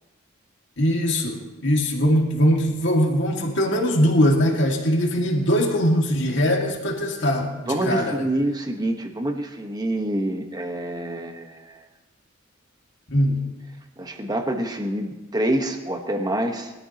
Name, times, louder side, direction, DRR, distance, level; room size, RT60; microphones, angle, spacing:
voice 1, 0.8-8.2 13.1-13.4, equal, 65° left, 0 dB, 2.2 m, -21 dB
voice 2, 7.7-11.8 14.0-16.7, right 1 dB, 20° right, 4 dB, 1.3 m, -26 dB
21.5 x 13.0 x 3.0 m, 1.1 s
head